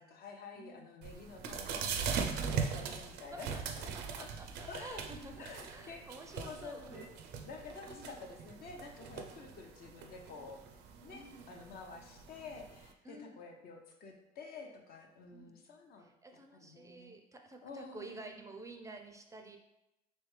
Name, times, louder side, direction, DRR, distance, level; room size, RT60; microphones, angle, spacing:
voice 1, 0.0-3.9 4.2-4.3 4.7-5.0 5.4-6.1 6.3-7.1 7.4-10.6 11.0-17.1 17.6-18.4, left 4 dB, 65° left, 3 dB, 0.7 m, -50 dB
voice 2, 0.6-0.9 2.6-3.0 3.3-3.6 3.9-7.0 7.9-8.2 11.1-11.5 13.0-13.4 15.3-15.5 16.0-19.6, right 2 dB, 20° right, 4 dB, 0.4 m, -51 dB
sound 1, 1.0-12.9, right 6 dB, 80° right, 0.4 m, -41 dB
3.2 x 3.2 x 3.2 m, 0.89 s
cardioid pair, 110°, 17 cm